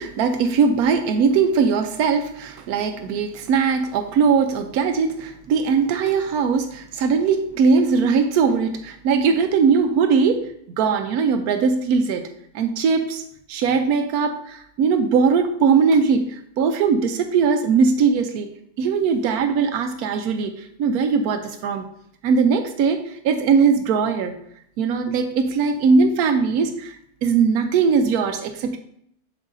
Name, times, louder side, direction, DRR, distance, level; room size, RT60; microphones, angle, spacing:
voice 1, 0.0-12.2 12.5-13.2 13.5-18.5 18.8-21.9 22.2-24.3 24.8-27.0 27.2-28.8, right 5 dB, 90° right, 7 dB, 1.1 m, -20 dB
7.5 x 7.1 x 2.6 m, 0.71 s
omnidirectional pair, 1.6 m